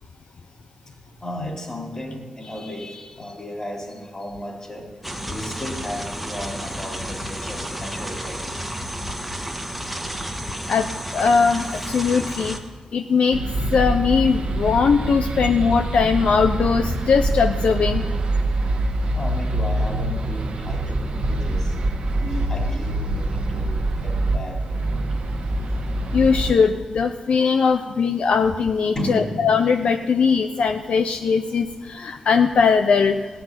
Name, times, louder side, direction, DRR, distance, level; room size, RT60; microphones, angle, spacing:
voice 1, 0.9-8.6 19.1-21.8 22.1-25.0 27.7-27.9 28.9-29.6, left 1 dB, 30° left, -1 dB, 3.9 m, -34 dB
sound 1, 5.0-12.6, equal, ahead, 1.4 m, -31 dB
voice 2, 10.7-12.6 12.9-13.4 13.7-18.0 26.1-33.3, left 5 dB, 75° left, 7 dB, 0.6 m, -20 dB
sound 2, 13.3-26.5, right 1 dB, 70° right, 1.4 m, -24 dB
15.5 x 6.1 x 9.7 m, 1.3 s
cardioid pair, 70°, 2 cm